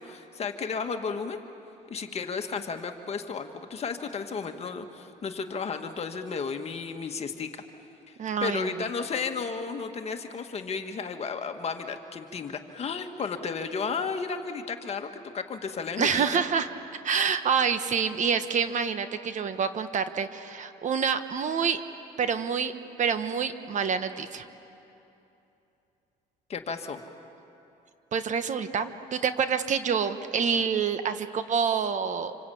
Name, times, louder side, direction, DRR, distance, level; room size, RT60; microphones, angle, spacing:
voice 1, 0.0-1.4 1.9-7.6 8.1-8.2 8.4-16.4 26.5-27.0, left 5 dB, 40° left, 5 dB, 1.8 m, -33 dB
voice 2, 8.2-8.7 16.0-16.7 17.0-21.8 22.2-22.7 23.0-24.4 28.1-32.3, right 6 dB, 45° right, 10 dB, 1.2 m, -27 dB
26.5 x 25.5 x 8.6 m, 2.9 s
cardioid pair, 110°, 17 cm